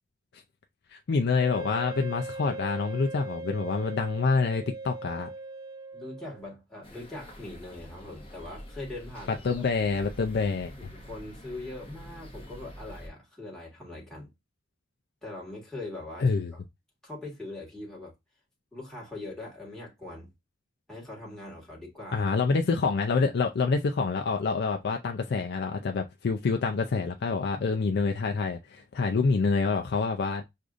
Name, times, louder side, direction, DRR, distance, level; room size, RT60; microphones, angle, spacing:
voice 1, 0.9-5.3 9.4-10.7 16.2-16.5 22.1-30.4, left 4 dB, 60° left, 0.4 m, -27 dB
Wind instrument woodwind instrument, 1.4-6.5, right 3 dB, 20° right, 0.3 m, -40 dB
voice 2, 5.9-9.6 10.5-14.3 15.2-16.6 17.0-18.1 18.7-20.3 20.9-22.3, left 2 dB, 5° left, 1.4 m, -42 dB
sound 1, 6.8-13.1, equal, 30° left, 1.0 m, -46 dB
6.4 x 2.5 x 2.4 m
head